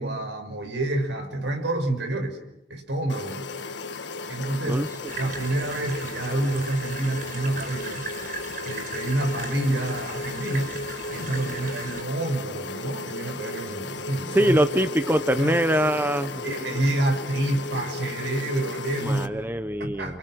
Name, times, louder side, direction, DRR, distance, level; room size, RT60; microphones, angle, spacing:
voice 1, 0.0-2.4 2.7-3.4 4.3-4.8 5.2-8.1 8.6-10.8 11.1-14.6 15.4-15.6 16.4-19.3 19.8-20.2, right 1 dB, 85° right, 6 dB, 5.5 m, -28 dB
sound 1, 3.1-19.3, left 3 dB, 80° left, 1.6 m, -35 dB
sound 2, 5.0-12.0, right 4 dB, 50° right, 3.9 m, -39 dB
voice 2, 14.3-16.4 19.0-20.2, equal, 10° right, 10 dB, 0.9 m, -23 dB
29.5 x 28.0 x 6.4 m, 0.87 s
head